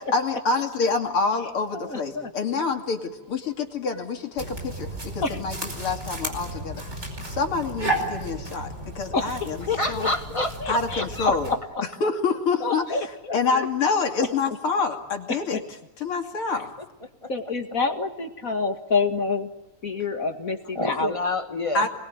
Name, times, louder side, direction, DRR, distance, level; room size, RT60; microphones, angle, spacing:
voice 1, 0.1-3.0 3.3-9.6 9.9-10.1 10.7-11.5 12.0-12.9 13.3-15.6 16.0-16.7 21.7-21.9, left 4 dB, 85° left, 3 dB, 3.5 m, -27 dB
voice 2, 1.7-2.3 5.2-5.4 9.1-9.4 9.7-10.1 10.3-11.8 12.6-13.7 14.2-14.6 15.3-15.4 17.3-19.5 19.8-21.1, left 4 dB, 40° left, 5 dB, 2.3 m, -28 dB
sound 1, 4.4-11.6, right 2 dB, 30° right, 5.3 m, -33 dB
voice 3, 9.8-11.1 16.5-17.3 20.7-21.9, left 1 dB, 15° left, 5 dB, 2.0 m, -29 dB
28.5 x 21.5 x 9.4 m, 0.97 s
omnidirectional pair, 2.4 m